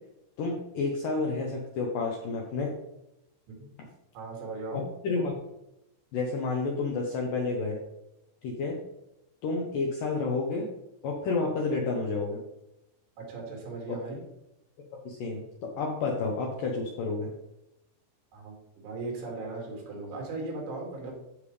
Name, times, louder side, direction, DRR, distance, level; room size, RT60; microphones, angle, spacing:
voice 1, 0.4-2.7 4.7-5.4 6.1-7.8 8.4-8.8 9.4-10.7 11.0-12.4 13.9-14.0 15.0-17.3, left 3 dB, 75° left, 0 dB, 2.0 m, -30 dB
voice 2, 4.1-4.8 13.2-14.2 18.3-21.1, right 3 dB, 90° right, -1 dB, 4.9 m, -38 dB
15.0 x 5.3 x 3.3 m, 0.88 s
omnidirectional pair, 5.3 m